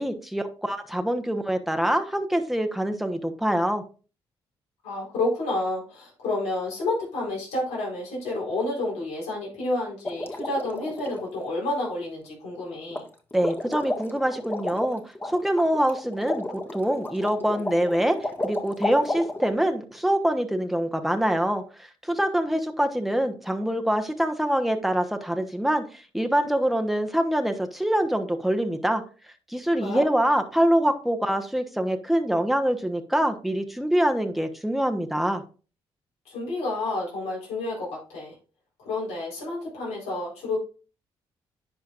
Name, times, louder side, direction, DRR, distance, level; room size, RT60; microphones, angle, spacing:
voice 1, 0.0-3.8 13.3-16.4 16.7-18.2 18.4-21.6 22.0-29.0 29.5-35.4, right 1 dB, ahead, 6 dB, 1.1 m, -25 dB
voice 2, 4.8-13.1 29.8-30.0 36.3-38.3 38.8-40.6, left 2 dB, 80° left, -4 dB, 4.2 m, -30 dB
sound 1, 10.0-11.2 12.9-13.0 13.3-19.5, left 1 dB, 20° left, 1.7 m, -32 dB
10.5 x 5.1 x 2.5 m, 0.36 s
supercardioid pair, 55°, 11 cm